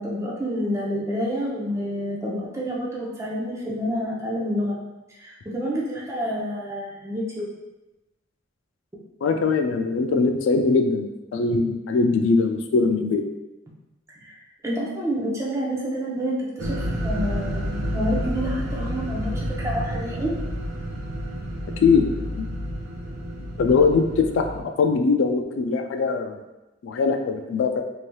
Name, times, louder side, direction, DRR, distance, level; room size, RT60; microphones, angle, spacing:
voice 1, 0.0-4.8 5.2-7.5 14.2-14.3 14.6-20.3, equal, 15° right, -4 dB, 0.5 m, -28 dB
voice 2, 9.2-13.2 21.8-22.1 22.4-22.5 23.6-26.4 26.8-27.8, left 4 dB, 75° left, 5 dB, 0.3 m, -21 dB
sound 1, 16.6-24.6, equal, 80° right, 0.5 m, -30 dB
3.2 x 2.8 x 2.2 m, 1.0 s
head